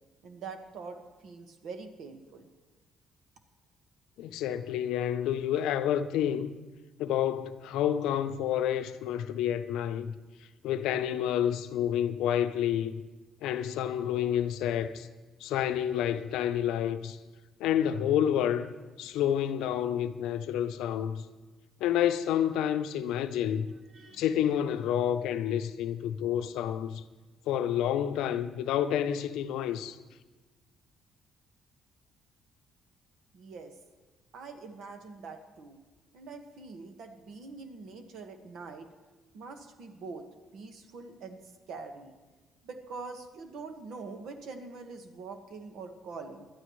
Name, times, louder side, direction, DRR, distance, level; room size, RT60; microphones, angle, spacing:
voice 1, 0.2-2.5 23.9-24.2 33.3-33.7 34.3-35.8 36.1-38.9 39.3-40.2 40.5-42.1 42.6-46.5, right 4 dB, 75° right, 1.5 m, -44 dB
voice 2, 4.2-6.5 7.0-10.2 10.6-13.0 13.4-15.1 15.4-17.2 17.6-18.7 19.0-21.2 21.8-23.7 24.1-27.0 27.5-30.0, left 10 dB, 85° left, 0.6 m, -29 dB
21.0 x 12.0 x 3.2 m
cardioid pair, 85°, 0 cm